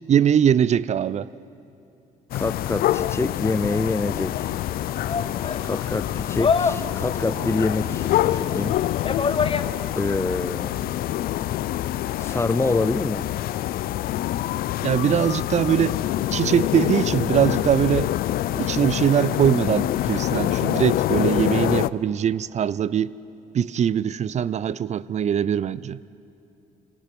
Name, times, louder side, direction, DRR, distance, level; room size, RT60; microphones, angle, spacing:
voice 1, 0.1-1.3 14.8-16.0 16.3-18.1 18.5-23.1 23.5-26.0, right 9 dB, 45° right, 20 dB, 0.5 m, -22 dB
sound 1, 2.3-21.9, left 14 dB, 65° left, 0.4 m, -26 dB
voice 2, 2.3-4.5 5.6-8.8 9.9-10.9 12.2-13.2, left 3 dB, 15° left, 14 dB, 0.6 m, -26 dB
sound 2, 3.9-10.1, left 5 dB, 35° left, 0.9 m, -29 dB
25.5 x 18.0 x 6.0 m, 2.9 s
supercardioid pair, 70°, 16 cm